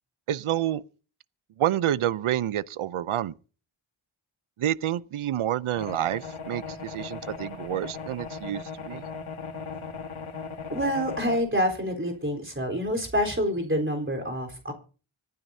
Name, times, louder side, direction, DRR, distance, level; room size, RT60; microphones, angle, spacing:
voice 1, 0.3-0.8 1.6-3.3 4.6-9.0, right 12 dB, 75° right, 0.6 m, -28 dB
sound 1, 5.8-11.4, left 5 dB, 75° left, 1.7 m, -38 dB
voice 2, 10.7-14.7, equal, 25° right, 3.9 m, -27 dB
25.5 x 9.4 x 2.7 m
cardioid pair, 55°, 49 cm